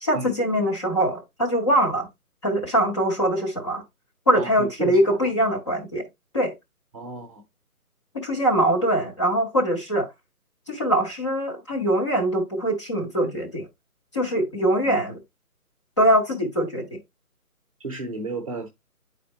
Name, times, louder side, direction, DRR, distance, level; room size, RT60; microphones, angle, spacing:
voice 1, 0.0-2.1 2.4-3.8 4.3-6.0 6.3-6.5 8.1-10.1 10.7-13.7 14.1-15.2 16.0-17.0, right 1 dB, 20° left, 1.0 m, -22 dB
voice 2, 4.4-5.6 6.9-7.4 14.8-15.0 17.8-18.7, right 3 dB, 25° right, 1.0 m, -34 dB
9.2 x 4.3 x 2.8 m
figure-of-eight pair, 165°, 45 cm